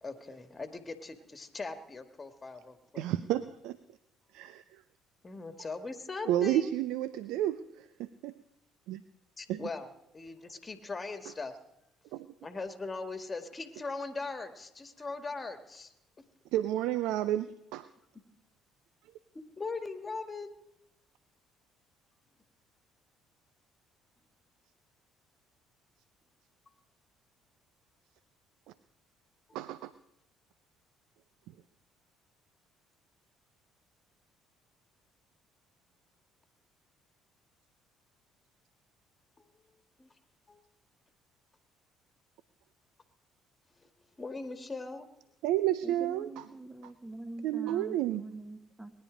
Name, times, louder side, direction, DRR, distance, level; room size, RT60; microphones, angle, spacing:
voice 1, 0.0-3.0 5.2-6.7 9.4-9.9 10.1-11.5 12.4-15.9 19.3-20.5 40.0-40.1 40.5-40.6 43.8-43.9 44.2-45.1, left 3 dB, 30° left, 8 dB, 1.7 m, -40 dB
voice 2, 3.0-3.8 4.3-4.6 6.3-7.6 8.0-8.3 8.9-9.0 9.5-9.6 12.1-12.3 16.5-17.9 29.5-29.9 45.4-46.3 47.4-48.2, right 13 dB, 70° right, 15 dB, 0.4 m, -30 dB
voice 3, 45.8-48.9, right 2 dB, 10° right, 8 dB, 1.3 m, -44 dB
20.0 x 10.0 x 5.0 m, 0.86 s
hypercardioid pair, 55°, 0 cm